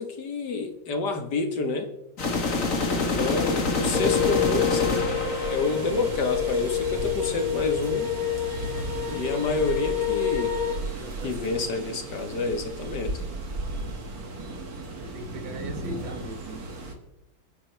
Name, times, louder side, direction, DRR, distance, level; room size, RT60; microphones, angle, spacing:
voice 1, 0.0-1.9 2.9-5.1 5.4-8.1 9.1-10.6 11.2-13.2, left 3 dB, 55° left, 6 dB, 1.9 m, -29 dB
sound 1, 2.2-6.3, left 3 dB, 40° left, 2.0 m, -27 dB
sound 2, 2.8-16.9, right 2 dB, 45° right, 2.3 m, -35 dB
voice 2, 2.8-3.5 8.6-9.3 10.9-12.1 13.7-14.3 15.0-16.8, right 2 dB, 75° right, 7 dB, 2.2 m, -42 dB
sound 3, 3.9-10.8, left 9 dB, 25° left, 2.0 m, -28 dB
29.5 x 10.0 x 3.3 m, 0.91 s
omnidirectional pair, 2.2 m